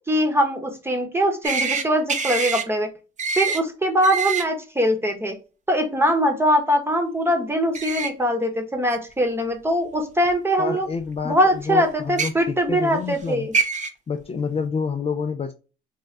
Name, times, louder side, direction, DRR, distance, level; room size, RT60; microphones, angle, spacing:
voice 1, 0.1-2.9 3.4-5.3 5.7-10.9 11.2-13.5, equal, 10° right, 4 dB, 1.0 m, -22 dB
sound 1, 1.4-1.8 2.1-2.6 3.2-3.6 4.0-4.4 7.7-8.1 8.9-9.0 10.3-10.4 12.0-12.3 13.2-13.3 13.5-13.9, right 5 dB, 40° right, 0.6 m, -24 dB
voice 2, 10.6-13.5 14.1-15.5, left 5 dB, 30° left, 6 dB, 0.4 m, -28 dB
3.7 x 2.1 x 3.2 m, 0.33 s
cardioid pair, 90°, 20 cm